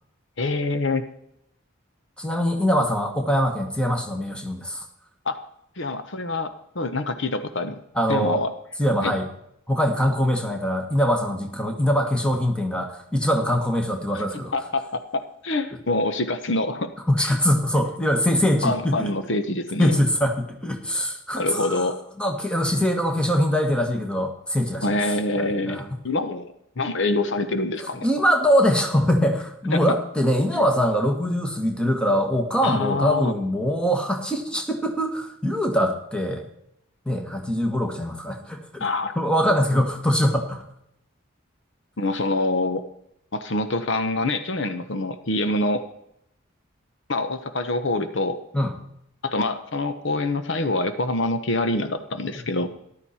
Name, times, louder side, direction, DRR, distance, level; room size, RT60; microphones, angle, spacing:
voice 1, 0.4-1.1 5.2-5.4 5.8-7.8 8.1-8.5 9.0-9.1 14.1-14.2 14.5-16.9 17.2-17.4 18.6-20.0 21.3-22.0 24.8-26.5 26.8-28.1 29.7-30.0 30.5-30.6 32.6-33.3 38.8-39.1 42.0-42.8 43.3-45.8 47.1-48.4 49.2-52.7, left 2 dB, 60° left, 9 dB, 0.9 m, -25 dB
voice 2, 2.2-4.9 7.9-8.4 8.8-9.3 9.7-14.5 17.1-19.1 19.8-21.9 22.2-24.8 25.4-26.0 28.0-36.5 37.0-38.9 39.1-40.6 48.5-48.8, equal, 5° left, 3 dB, 1.5 m, -23 dB
14.0 x 11.5 x 4.3 m, 0.75 s
head